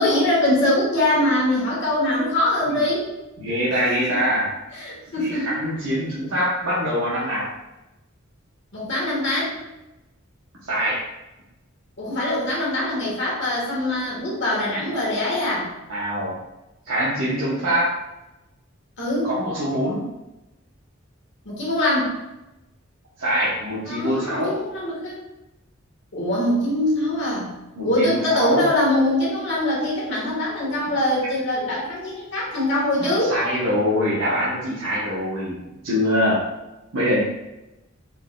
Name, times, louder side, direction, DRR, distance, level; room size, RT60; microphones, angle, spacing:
voice 1, 0.0-3.1 4.1-4.2 4.7-5.5 8.7-9.6 12.0-15.7 19.0-19.3 21.4-22.1 23.9-25.1 26.1-27.5 27.8-33.3, left 1 dB, 60° left, -5 dB, 1.3 m, -23 dB
voice 2, 3.4-4.5 5.2-7.5 10.7-11.0 15.9-16.4 16.8-18.0 19.2-20.1 23.2-24.5 27.8-28.7 33.0-35.6 35.8-36.4 36.9-37.2, equal, 85° right, -8 dB, 0.9 m, -23 dB
4.2 x 3.7 x 2.2 m, 0.97 s
head